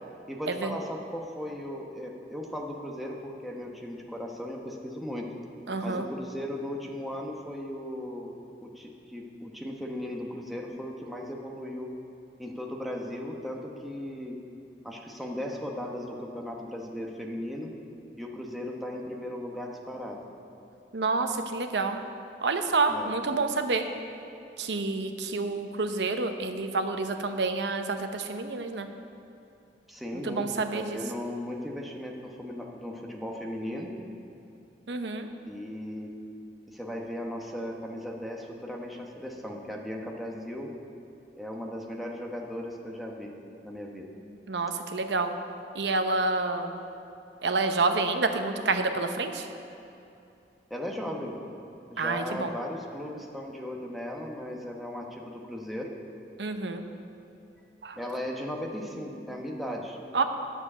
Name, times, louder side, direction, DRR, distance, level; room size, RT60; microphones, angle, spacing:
voice 1, 0.3-5.3 5.8-8.3 8.6-11.9 12.4-14.4 14.8-17.8 18.2-20.2 22.9-23.2 29.9-33.9 35.5-36.3 36.7-40.7 41.3-44.1 50.7-51.4 51.9-56.0 58.0-60.0, left 1 dB, ahead, -1 dB, 1.0 m, -37 dB
voice 2, 5.7-6.1 20.9-22.0 22.4-23.8 24.6-28.9 30.2-31.0 34.9-35.3 44.5-45.3 45.7-46.7 47.4-49.5 52.0-52.5 56.4-56.8 57.8-58.0 60.1-60.2, right 3 dB, 75° right, 7 dB, 0.8 m, -28 dB
9.3 x 7.3 x 7.3 m, 2.7 s
head